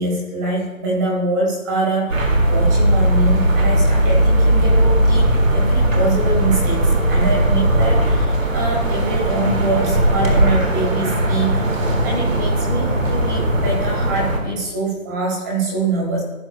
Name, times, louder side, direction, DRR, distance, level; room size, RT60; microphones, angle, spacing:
voice 1, 0.0-16.2, right 2 dB, 15° right, -2 dB, 1.6 m, -24 dB
sound 1, 2.1-14.4, right 1 dB, 60° right, 1.9 m, -17 dB
16.0 x 6.2 x 2.3 m, 1.1 s
figure-of-eight pair, 160°, 43 cm